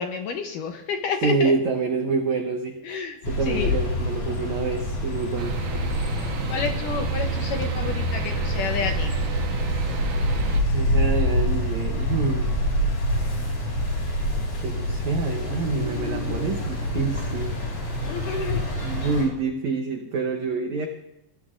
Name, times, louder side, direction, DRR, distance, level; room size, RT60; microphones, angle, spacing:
voice 1, 0.0-1.5 2.9-3.2 3.5-3.7 6.5-9.2 18.0-18.6, left 6 dB, 75° left, 5 dB, 2.0 m, -30 dB
voice 2, 1.2-5.6 10.7-12.5 14.5-17.5 18.8-20.9, right 4 dB, 90° right, 4 dB, 1.6 m, -27 dB
sound 1, 3.2-19.2, left 1 dB, 45° left, 5.4 m, -26 dB
sound 2, 5.4-10.6, right 5 dB, 70° right, 2.6 m, -29 dB
21.5 x 14.0 x 2.5 m, 0.89 s
omnidirectional pair, 4.6 m